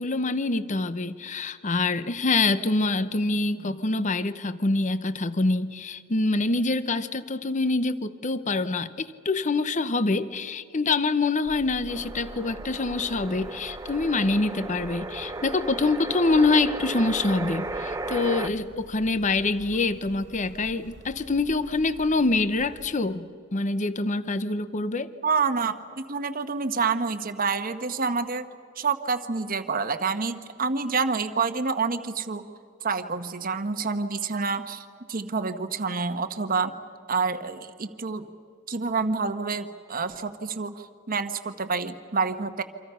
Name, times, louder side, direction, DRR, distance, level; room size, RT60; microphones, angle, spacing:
voice 1, 0.0-25.1, left 3 dB, 35° left, 14 dB, 0.8 m, -25 dB
sound 1, 11.4-22.9, right 1 dB, 60° right, 1.6 m, -47 dB
sound 2, 11.9-18.5, right 2 dB, 15° right, 0.9 m, -35 dB
voice 2, 25.2-28.5 28.8-32.5 32.8-36.7 37.1-38.3 38.7-42.6, right 4 dB, 45° right, 9 dB, 1.2 m, -28 dB
28.0 x 26.0 x 5.7 m, 2.3 s
head